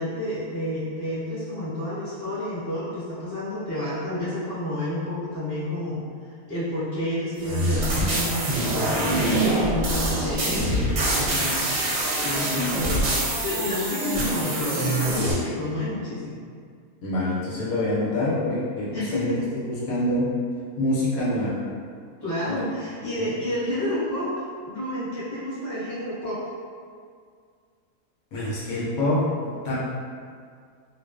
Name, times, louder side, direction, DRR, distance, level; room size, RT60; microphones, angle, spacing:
voice 1, 0.0-16.4 18.9-19.4 22.2-26.4, left 1 dB, 20° left, -12 dB, 0.8 m, -30 dB
sound 1, 7.4-15.3, right 1 dB, 65° right, 0.8 m, -25 dB
voice 2, 17.0-19.3 19.6-20.3 20.8-21.5 22.5-22.6 23.2-23.3 28.3-29.8, left 1 dB, 75° left, -8 dB, 1.0 m, -26 dB
2.5 x 2.3 x 2.3 m, 2.1 s
omnidirectional pair, 1.5 m